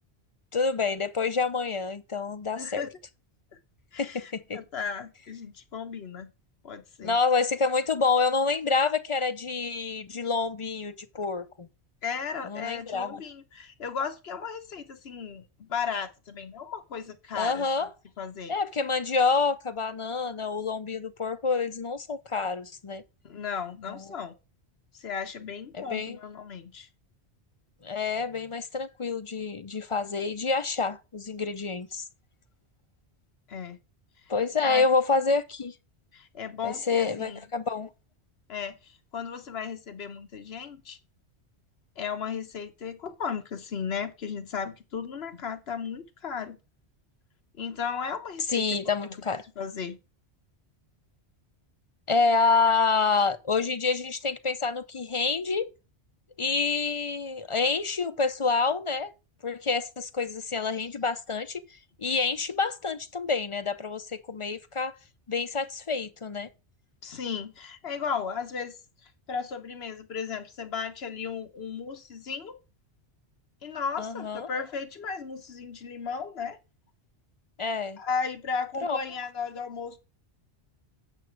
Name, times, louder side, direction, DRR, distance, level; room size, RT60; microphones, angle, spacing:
voice 1, 0.5-2.9 4.0-4.6 7.0-11.7 12.4-13.2 17.3-17.9 18.5-23.0 23.9-24.1 25.7-26.2 27.8-32.0 34.3-35.7 36.6-37.9 48.5-49.4 52.1-55.7 56.4-59.1 59.4-61.6 62.0-64.9 65.3-66.5 74.0-74.5 77.6-78.0 78.8-79.0, left 4 dB, 40° left, 0.5 m, -27 dB
voice 2, 2.6-2.9 3.9-6.3 6.6-7.2 12.0-17.7 18.2-18.5 23.2-24.3 25.0-26.9 33.5-33.8 34.6-34.9 36.1-37.5 38.5-41.0 42.0-46.6 47.6-48.7 49.0-49.2 49.6-50.0 67.0-68.8 69.3-72.5 73.6-76.6 78.0-80.0, left 6 dB, 65° left, 1.3 m, -35 dB
8.8 x 6.0 x 4.6 m
omnidirectional pair, 1.1 m